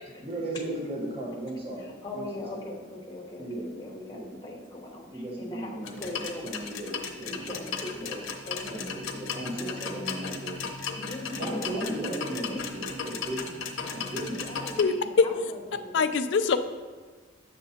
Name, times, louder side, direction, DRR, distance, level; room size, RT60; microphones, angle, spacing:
voice 1, 0.2-2.7 3.4-3.7 4.1-4.3 5.1-7.6 8.0-8.1 8.7-10.7 11.3-14.4, right 1 dB, 30° right, -3 dB, 1.0 m, -36 dB
voice 2, 1.8-6.5 7.2-8.9 9.5-10.0 11.0-12.0 12.5-12.6 14.1-16.1, left 1 dB, 20° left, -3 dB, 0.9 m, -40 dB
sound 1, 5.8-14.8, left 5 dB, 90° left, 0.8 m, -36 dB
voice 3, 14.8-15.2 15.9-16.6, left 5 dB, 60° left, 10 dB, 0.3 m, -23 dB
8.0 x 6.6 x 2.8 m, 1.4 s
head